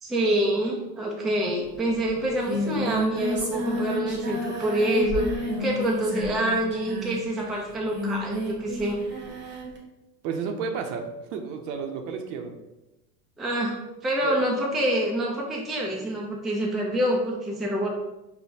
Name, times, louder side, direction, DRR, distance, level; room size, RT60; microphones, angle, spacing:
voice 1, 0.0-5.3 5.6-9.0 13.4-13.8 14.0-17.9, right 1 dB, ahead, -3 dB, 0.4 m, -26 dB
Singing, 1.7-1.8 2.0-9.8, equal, 25° right, 1.0 m, -31 dB
voice 2, 10.2-12.5 14.2-14.4, right 5 dB, 55° right, 5 dB, 0.7 m, -32 dB
5.1 x 2.2 x 2.7 m, 0.99 s
hypercardioid pair, 95°, 46 cm